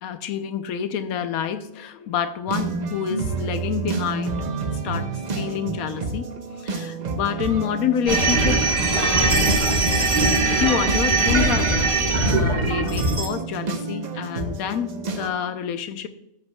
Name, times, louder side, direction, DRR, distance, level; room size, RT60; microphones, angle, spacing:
voice 1, 0.0-4.3 4.8-6.3 6.6-9.4 9.8-10.1 10.6-16.1, left 8 dB, 80° left, 10 dB, 1.1 m, -28 dB
sound 1, 2.5-15.3, right 4 dB, 40° right, 0.7 m, -30 dB
sound 2, 8.1-13.3, right 2 dB, 55° right, 2.1 m, -20 dB
14.0 x 6.8 x 2.2 m, 0.83 s
omnidirectional pair, 1.5 m